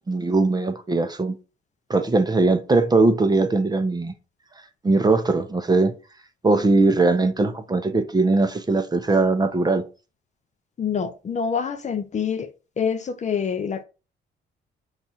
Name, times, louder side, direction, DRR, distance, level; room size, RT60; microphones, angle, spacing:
voice 1, 0.1-1.4 1.9-4.2 4.8-5.9 6.4-9.8, right 3 dB, 20° right, 0.5 m, -20 dB
voice 2, 10.8-12.5 12.8-13.8, left 6 dB, 35° left, 0.6 m, -26 dB
4.2 x 2.4 x 4.1 m
cardioid pair, 90°, 20 cm